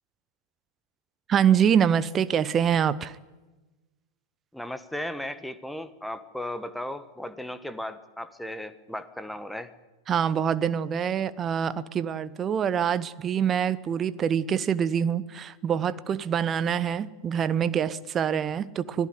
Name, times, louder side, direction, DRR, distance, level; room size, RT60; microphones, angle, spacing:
voice 1, 1.3-3.2 10.1-19.1, right 8 dB, 25° right, 1.0 m, -25 dB
voice 2, 4.5-9.7, left 1 dB, ahead, 1.4 m, -36 dB
25.0 x 17.0 x 9.6 m
figure-of-eight pair, 90°, 0 cm